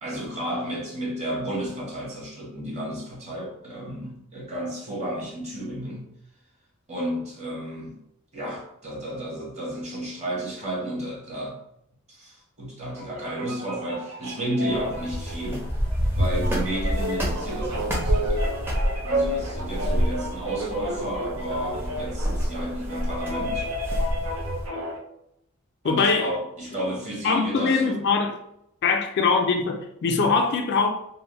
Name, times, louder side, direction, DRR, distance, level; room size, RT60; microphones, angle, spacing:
voice 1, 0.0-6.1 6.9-8.0 8.3-11.6 12.1-15.6 16.1-18.5 19.0-23.7 25.8-28.0, right 1 dB, 30° right, 1.0 m, -32 dB
sound 1, 12.9-25.0, equal, 75° right, 0.6 m, -32 dB
sound 2, 14.7-24.7, equal, 10° right, 0.5 m, -28 dB
voice 2, 25.8-26.3 27.2-28.4 28.8-30.9, left 4 dB, 55° left, 0.3 m, -22 dB
2.6 x 2.0 x 3.0 m
head